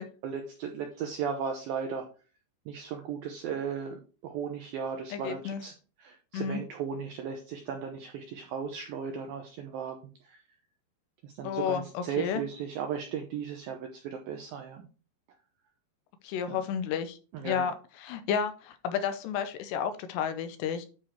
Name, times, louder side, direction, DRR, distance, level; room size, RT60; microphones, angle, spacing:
voice 1, 0.0-2.1 2.7-5.7 6.0-10.0 10.2-10.4 11.2-14.9 16.5-16.6 17.3-17.7, right 7 dB, 85° right, 4 dB, 2.1 m, -36 dB
voice 2, 5.1-5.6 6.3-6.6 11.4-12.4 16.2-17.2 17.4-17.7 18.0-20.9, left 7 dB, 80° left, 9 dB, 2.7 m, -31 dB
9.4 x 5.1 x 4.5 m, 0.36 s
omnidirectional pair, 5.3 m